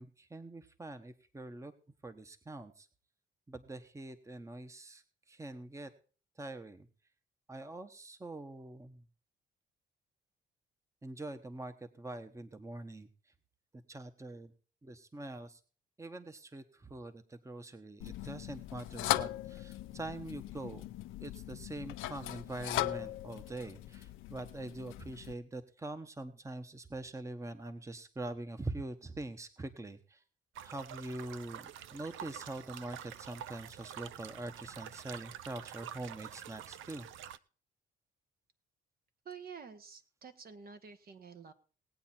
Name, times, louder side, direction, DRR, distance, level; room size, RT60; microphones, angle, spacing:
voice 1, 0.0-1.7 2.0-2.9 3.5-5.9 6.4-6.9 7.5-9.0 11.0-13.3 13.7-14.5 14.8-15.6 16.0-20.8 21.2-30.2 30.6-37.1, right 2 dB, 15° right, 9 dB, 1.1 m, -44 dB
sound 1, 18.0-25.3, left 15 dB, 90° left, 0.7 m, -39 dB
sound 2, 30.5-37.4, right 10 dB, 80° right, 0.5 m, -47 dB
voice 2, 39.2-41.5, right 6 dB, 50° right, 8 dB, 1.4 m, -49 dB
18.5 x 8.6 x 4.4 m, 0.40 s
cardioid pair, 90°, 20 cm